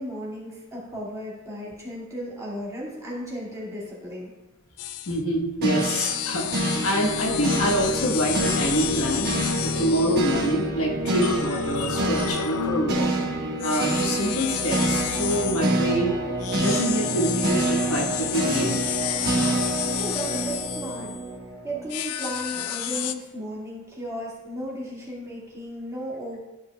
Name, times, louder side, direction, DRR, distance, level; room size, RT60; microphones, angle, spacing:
voice 1, 0.0-4.3 20.0-21.1 21.6-26.4, equal, 15° right, -6 dB, 1.9 m, -35 dB
sound 1, 4.8-5.2 5.8-10.5 11.2-13.0 13.6-15.8 16.4-21.3 21.9-23.1, left 11 dB, 90° left, 0.4 m, -31 dB
voice 2, 5.1-9.3 9.6-13.1 13.6-16.2 16.5-18.8, equal, 70° left, 0 dB, 1.2 m, -26 dB
sound 2, 5.6-21.9, right 1 dB, 45° right, 1.2 m, -27 dB
12.5 x 5.2 x 2.2 m, 1.0 s
head